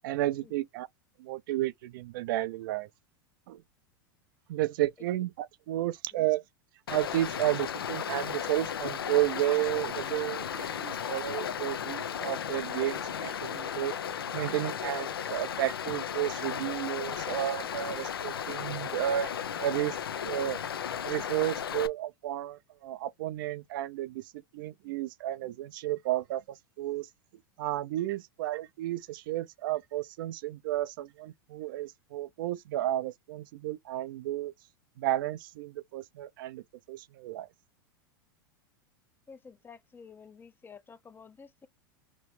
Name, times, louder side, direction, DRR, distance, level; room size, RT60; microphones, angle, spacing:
voice 1, 0.0-0.9 1.2-2.9 3.5-3.6 4.5-6.4 6.9-13.9 14.3-19.3 19.6-20.0 20.2-20.6 21.0-27.1 27.6-34.5 35.0-37.5, right 14 dB, 65° right, 0.4 m, -32 dB
Stream, 6.9-21.9, left 8 dB, 90° left, 0.5 m, -35 dB
voice 2, 39.3-41.7, left 5 dB, 15° left, 0.5 m, -51 dB
3.0 x 3.0 x 3.1 m
hypercardioid pair, 100°, 12 cm